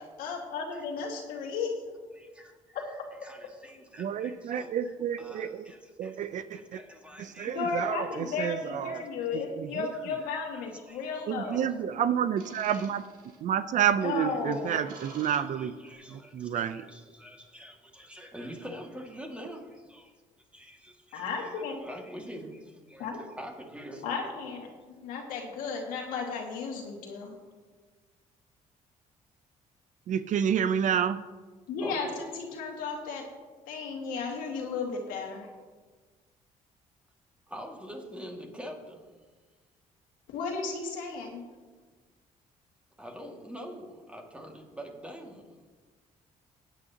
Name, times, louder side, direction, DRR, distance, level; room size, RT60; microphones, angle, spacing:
voice 1, 0.0-1.7 2.7-2.9 7.5-11.7 14.0-14.8 21.1-21.8 23.0-23.2 24.0-27.3 31.7-33.2 33.7-35.5 40.3-41.4, left 5 dB, 90° left, 1 dB, 1.9 m, -34 dB
voice 2, 2.2-6.3 6.5-8.1 8.9-9.1 9.9-10.2 10.5-11.1 11.4-11.6 12.7-12.8 14.0-20.2 20.5-21.5 21.8-23.1 23.4-24.3 31.8-32.2 37.5-39.1 43.0-45.6, equal, 10° right, 1 dB, 2.0 m, -45 dB
voice 3, 4.0-5.7 6.0-6.8 7.2-9.0 9.3-9.9 11.3-13.0 13.4-15.7 16.1-16.8 30.1-31.2, right 8 dB, 60° right, 13 dB, 0.5 m, -29 dB
sound 1, 10.8-11.4 12.4-13.4 13.9-15.9, right 4 dB, 80° right, 1.9 m, -50 dB
16.0 x 9.2 x 2.9 m, 1.4 s
cardioid pair, 90°, 14 cm